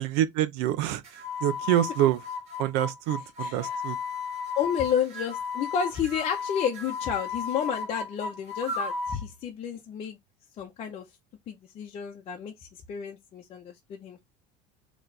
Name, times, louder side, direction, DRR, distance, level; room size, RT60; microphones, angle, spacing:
voice 1, 0.0-2.2 2.6-4.0, right 13 dB, 75° right, 0.7 m, -26 dB
sound 1, 1.0-9.2, left 5 dB, 40° right, 1.7 m, -34 dB
voice 2, 3.4-3.8 4.5-10.2 10.6-11.0 11.5-14.2, left 8 dB, 35° left, 0.8 m, -31 dB
4.2 x 3.1 x 3.3 m
cardioid pair, 145°, 17 cm